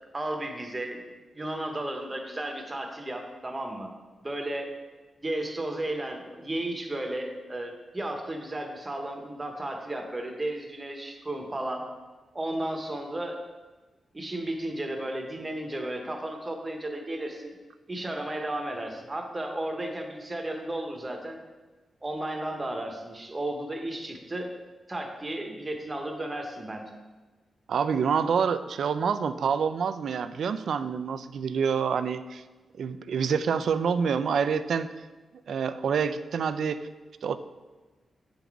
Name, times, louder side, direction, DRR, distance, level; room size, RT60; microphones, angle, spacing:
voice 1, 0.1-1.0 1.3-3.9 4.2-4.7 5.2-11.9 12.3-13.4 14.1-17.5 17.9-21.4 22.0-24.5 24.9-26.9, right 1 dB, 20° right, 2 dB, 0.9 m, -34 dB
voice 2, 27.7-32.4 32.8-34.9 35.5-36.9 37.2-37.4, right 6 dB, 75° right, 12 dB, 0.3 m, -27 dB
8.1 x 3.9 x 4.6 m, 1.3 s
wide cardioid pair, 130°, 0 cm